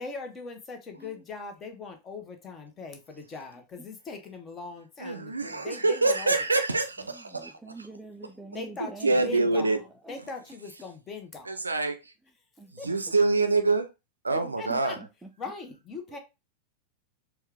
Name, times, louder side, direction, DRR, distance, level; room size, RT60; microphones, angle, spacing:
voice 1, 0.0-6.3 8.5-9.8 10.1-11.6 12.8-12.9 14.6-14.9 15.4-16.2, left 4 dB, 25° left, 0.9 m, -40 dB
voice 2, 5.0-7.5 9.0-9.8 11.5-12.1 12.8-13.9 14.2-15.0, right 3 dB, 80° right, 0.4 m, -25 dB
voice 3, 7.1-9.7 10.0-10.2 12.6-13.1 14.4-15.3, right 3 dB, 5° right, 0.5 m, -46 dB
4.3 x 2.3 x 3.5 m
figure-of-eight pair, 90°, 0 cm